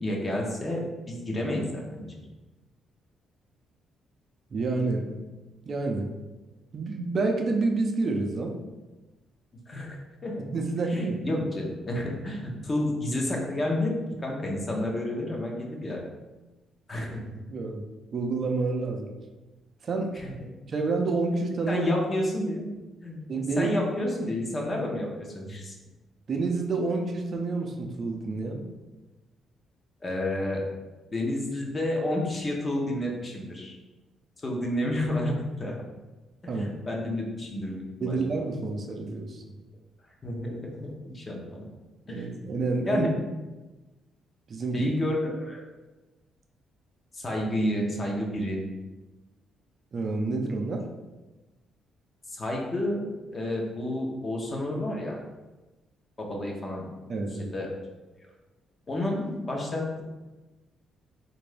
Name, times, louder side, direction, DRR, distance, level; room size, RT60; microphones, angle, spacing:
voice 1, 0.0-2.1 9.7-10.4 10.9-13.9 14.2-16.0 16.9-17.4 20.1-20.3 21.7-22.7 23.0-23.2 23.6-25.7 30.0-30.7 31.1-33.7 34.4-35.8 36.5-38.3 40.2-41.7 42.1-42.3 42.8-43.1 44.7-45.6 47.1-48.6 52.3-55.2 56.2-56.9 57.4-57.7 58.9-60.0, left 1 dB, 35° left, -1 dB, 0.9 m, -30 dB
voice 2, 4.5-5.1 5.7-6.1 6.7-8.5 10.4-11.5 17.5-17.8 18.1-19.1 19.8-20.1 20.7-21.9 23.3-23.8 26.3-28.7 36.5-36.8 38.0-39.4 42.1-43.1 44.5-44.8 49.9-50.8 57.1-57.5, right 3 dB, 50° right, 2 dB, 0.5 m, -28 dB
3.6 x 2.5 x 3.3 m, 1.1 s
cardioid pair, 90°, 0 cm